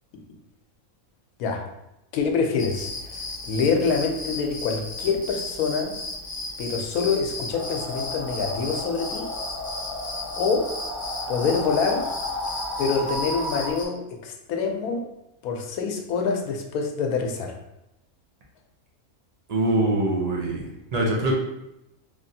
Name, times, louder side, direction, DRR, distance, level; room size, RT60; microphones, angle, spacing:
voice 1, 2.1-3.2 3.5-5.9 6.6-9.3 10.4-10.7 11.3-12.0 12.8-15.0 15.4-17.5, left 5 dB, 90° left, 3 dB, 1.0 m, -26 dB
sound 1, 2.6-13.8, left 2 dB, 30° left, 0.4 m, -35 dB
sound 2, 7.5-13.7, left 1 dB, 15° right, 0.7 m, -33 dB
voice 2, 19.5-21.3, right 1 dB, 75° right, -3 dB, 0.3 m, -24 dB
3.2 x 2.5 x 2.6 m, 0.86 s
omnidirectional pair, 1.5 m